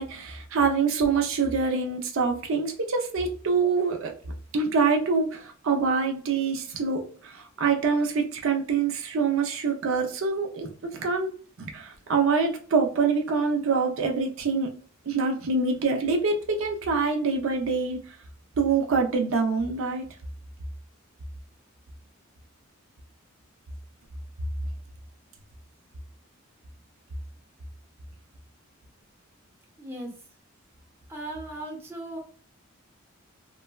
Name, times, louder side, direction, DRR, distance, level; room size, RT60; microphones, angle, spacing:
voice 1, 0.0-4.1 4.5-14.7 15.1-18.0 18.6-20.1, right 4 dB, 65° right, 3 dB, 0.5 m, -25 dB
voice 2, 29.8-30.1 31.1-32.2, right 1 dB, 10° right, -1 dB, 0.7 m, -37 dB
3.1 x 2.1 x 2.2 m, 0.43 s
head